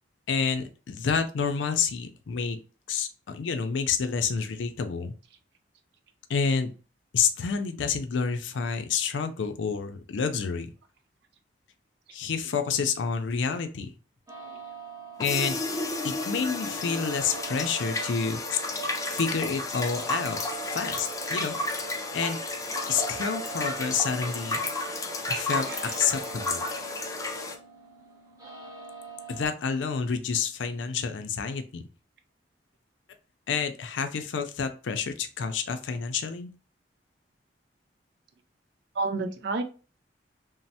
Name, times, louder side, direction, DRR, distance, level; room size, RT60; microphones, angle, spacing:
voice 1, 0.3-2.6 2.9-5.1 6.3-6.7 7.1-10.7 12.1-13.9 15.2-15.6 16.0-18.6 19.1-20.4 20.7-21.6 22.1-22.4 22.9-24.6 25.3-25.7 26.0-26.6 29.3-31.8 33.5-36.5, left 6 dB, 85° left, 8 dB, 0.4 m, -29 dB
sound 1, 14.3-29.5, right 4 dB, 20° right, 0.6 m, -45 dB
sound 2, 15.2-27.6, left 2 dB, 20° left, 0.4 m, -32 dB
voice 2, 25.3-26.0 38.9-39.6, right 3 dB, 65° right, 9 dB, 0.4 m, -32 dB
3.1 x 2.0 x 2.7 m, 0.35 s
head